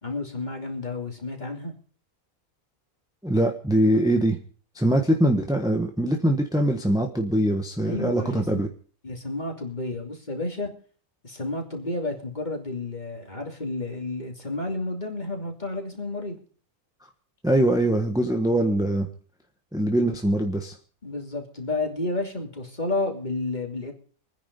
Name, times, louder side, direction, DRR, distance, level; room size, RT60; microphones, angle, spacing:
voice 1, 0.0-1.7 7.8-8.6 9.0-10.7 11.2-16.4 21.0-23.9, left 2 dB, 30° left, 2 dB, 3.1 m, -31 dB
voice 2, 3.2-4.4 4.7-8.7 17.4-19.1 19.7-20.8, right 1 dB, 5° right, 3 dB, 1.3 m, -22 dB
22.5 x 10.0 x 5.4 m, 0.42 s
omnidirectional pair, 1.5 m